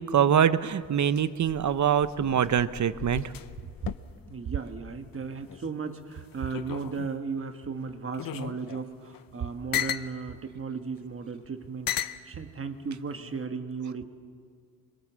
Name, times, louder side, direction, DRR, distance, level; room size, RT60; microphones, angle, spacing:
voice 1, 0.0-3.3, right 8 dB, 55° right, 13 dB, 0.7 m, -24 dB
sound 1, 0.6-5.7 6.0-7.3 7.9-10.1 11.0-11.1 11.9-12.2 13.1-13.5, left 10 dB, 70° left, 0.8 m, -37 dB
voice 2, 4.3-11.9 12.2-14.0, right 5 dB, 35° right, 7 dB, 1.3 m, -36 dB
24.0 x 22.5 x 7.4 m, 2.1 s
wide cardioid pair, 160°, 36 cm